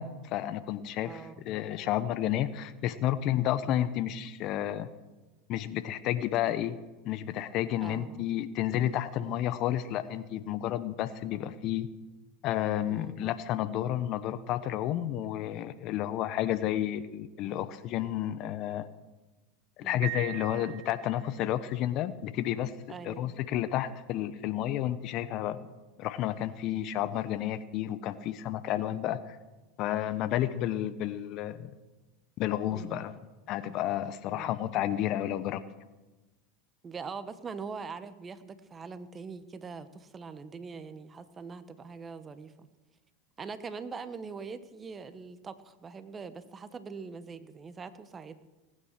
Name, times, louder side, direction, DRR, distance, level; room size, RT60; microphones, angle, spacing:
voice 1, 0.0-4.9 5.5-6.8 7.0-11.9 12.4-18.9 19.8-22.7 23.0-25.6 26.0-29.4 29.8-31.7 32.4-33.1 33.5-35.6, left 12 dB, 50° left, 14 dB, 0.9 m, -31 dB
voice 2, 1.0-1.3 7.8-8.3 12.9-13.2 19.8-20.1 22.9-23.3 32.7-33.0 34.3-34.6 36.8-42.7 43.4-48.5, right 5 dB, 25° right, 12 dB, 1.1 m, -43 dB
Piano, 20.0-21.5, right 19 dB, 65° right, 0.5 m, -40 dB
19.0 x 9.1 x 6.7 m, 1.2 s
hypercardioid pair, 95°, 0 cm